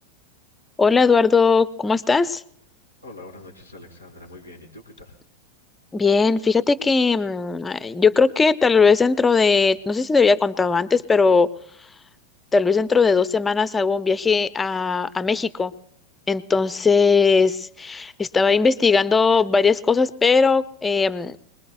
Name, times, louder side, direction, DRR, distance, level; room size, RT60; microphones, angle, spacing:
voice 1, 0.8-2.4 5.9-11.5 12.5-15.7 16.3-21.4, left 4 dB, 15° left, 16 dB, 0.5 m, -19 dB
voice 2, 3.0-5.1, left 2 dB, 90° right, -4 dB, 4.5 m, -43 dB
26.5 x 20.0 x 2.3 m, 0.65 s
figure-of-eight pair, 90°, 0 cm